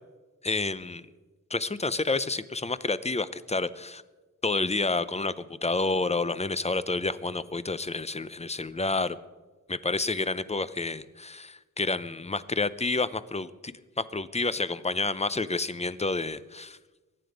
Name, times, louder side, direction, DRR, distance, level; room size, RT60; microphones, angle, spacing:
voice 1, 0.4-1.0 1.5-4.0 4.4-9.2 9.7-16.8, left 3 dB, 20° left, 15 dB, 0.6 m, -29 dB
23.0 x 9.7 x 5.1 m, 1.2 s
wide cardioid pair, 95°, 32 cm